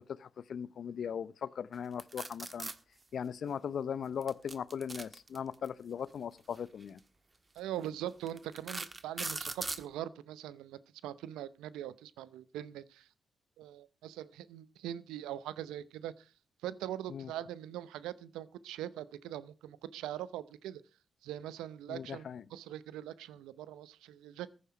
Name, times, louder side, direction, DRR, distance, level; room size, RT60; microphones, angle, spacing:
voice 1, 0.0-2.7 3.1-7.0 17.1-17.3 21.9-22.4, left 7 dB, 65° left, 0.7 m, -39 dB
sound 1, 2.0-2.7 4.2-5.7 6.8-7.0 7.6-7.7 8.3-9.8, right 3 dB, 35° right, 1.5 m, -39 dB
voice 2, 7.6-13.1 13.6-16.3 16.6-20.8 21.2-22.2 22.5-24.5, right 12 dB, 85° right, 0.7 m, -42 dB
15.0 x 9.7 x 4.9 m
supercardioid pair, 45°, 0 cm